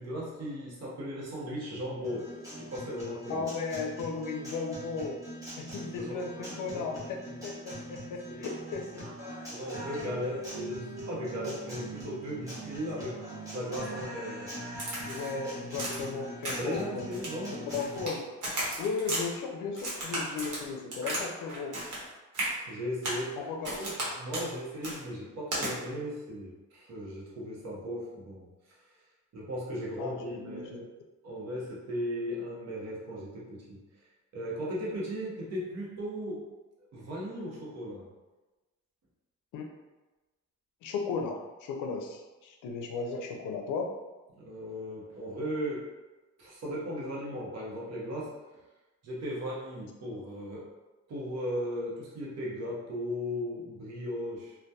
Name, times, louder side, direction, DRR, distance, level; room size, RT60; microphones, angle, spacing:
voice 1, 0.0-2.3 2.6-3.4 5.8-7.5 8.3-8.5 9.5-13.2 13.5-14.6 16.6-17.7 22.6-23.4 23.8-28.8 29.3-30.8 31.2-33.8 34.3-36.5 36.9-38.1 44.3-45.9 46.4-48.3 49.0-50.7 51.1-54.6, equal, 55° right, -4 dB, 0.8 m, -37 dB
Guitar, 2.0-18.0, right 1 dB, 10° right, 0.8 m, -42 dB
voice 2, 3.3-5.2 5.6-9.1 15.0-17.0 17.7-18.2 18.8-21.8 23.4-23.8 30.0-30.9 39.5-39.7 40.8-43.9, left 4 dB, 80° left, 2 dB, 0.5 m, -35 dB
Crack, 14.8-15.3 15.8-16.1 16.4-16.8 17.1-18.1 18.4-19.2 19.8-21.2 21.5-22.1 22.3-22.5 23.0-23.2 23.6-24.1 24.3-24.5 24.8-25.0 25.5-25.7, right 1 dB, 80° right, 1.0 m, -34 dB
2.6 x 2.2 x 2.2 m, 1.2 s
cardioid pair, 135°, 30 cm